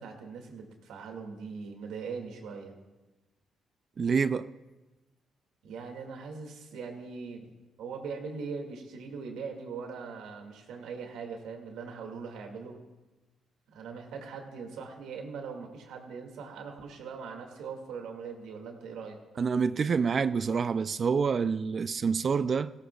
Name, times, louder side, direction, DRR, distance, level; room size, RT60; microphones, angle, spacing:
voice 1, 0.0-2.7 5.6-7.5 7.8-12.8 13.7-19.2, right 5 dB, 85° right, 2.2 m, -41 dB
voice 2, 4.0-4.5 19.4-22.7, right 5 dB, 45° right, 0.4 m, -27 dB
20.0 x 17.0 x 2.4 m
cardioid pair, 90°, 0 cm